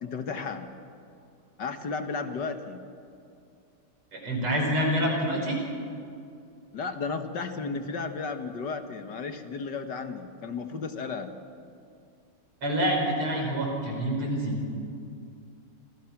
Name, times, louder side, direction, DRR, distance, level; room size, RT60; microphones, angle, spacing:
voice 1, 0.0-0.7 1.6-2.8 6.7-11.3, left 4 dB, 55° left, 7 dB, 1.9 m, -34 dB
voice 2, 4.1-5.6 12.6-14.6, equal, 80° right, 0 dB, 5.9 m, -27 dB
29.0 x 25.0 x 6.0 m, 2.5 s
omnidirectional pair, 2.4 m